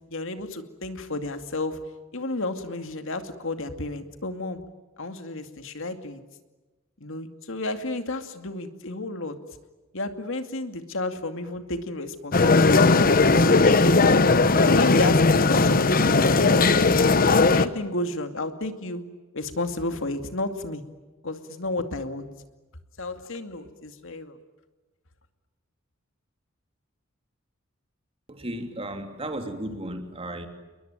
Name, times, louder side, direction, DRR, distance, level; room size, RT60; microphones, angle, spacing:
voice 1, 0.1-1.8 2.1-4.6 5.0-6.2 7.0-9.4 9.9-13.9 14.5-16.7 17.4-19.0 19.3-20.8 21.2-22.3 23.0-24.4, left 2 dB, 70° left, 8 dB, 2.5 m, -32 dB
sound 1, 12.3-17.7, left 3 dB, 45° left, 1.0 m, -18 dB
voice 2, 28.3-30.5, right 1 dB, 30° right, 5 dB, 3.2 m, -34 dB
29.0 x 22.0 x 9.1 m, 1.2 s
head